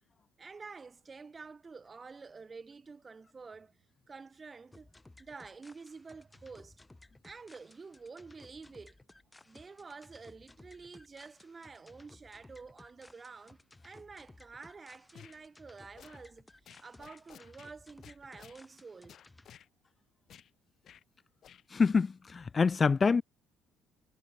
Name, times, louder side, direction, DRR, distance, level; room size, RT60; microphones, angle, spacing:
voice 1, 0.4-3.7 4.1-4.9 5.2-6.8 7.2-8.9 9.5-13.6 13.8-16.5 16.8-19.2, right 4 dB, 25° right, 1.1 m, -49 dB
sound 1, 4.7-19.5, left 2 dB, 15° left, 2.8 m, -58 dB
sound 2, 15.1-15.4 16.0-16.2 16.7-17.7 18.0-18.6 19.1-19.7 20.3-20.5 20.8-21.0 21.4-21.6, left 9 dB, 55° left, 3.7 m, -55 dB
voice 2, 21.7-23.2, left 5 dB, 30° left, 0.6 m, -26 dB
cardioid pair, 100°, 0 cm